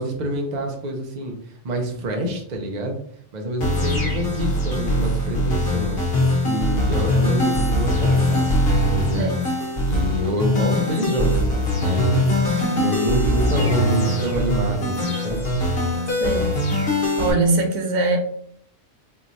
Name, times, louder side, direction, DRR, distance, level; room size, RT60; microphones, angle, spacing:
voice 1, 0.0-3.0 3.3-8.5 8.9-9.5 9.9-11.4 11.8-15.4, equal, 40° right, 2 dB, 0.7 m, -27 dB
sound 1, 3.6-17.3, left 1 dB, 50° left, 1.1 m, -21 dB
voice 2, 9.2-9.5 12.6-12.9 16.2-16.5 17.2-18.2, right 3 dB, 85° right, 3 dB, 1.2 m, -22 dB
4.6 x 3.1 x 2.7 m, 0.65 s
omnidirectional pair, 1.4 m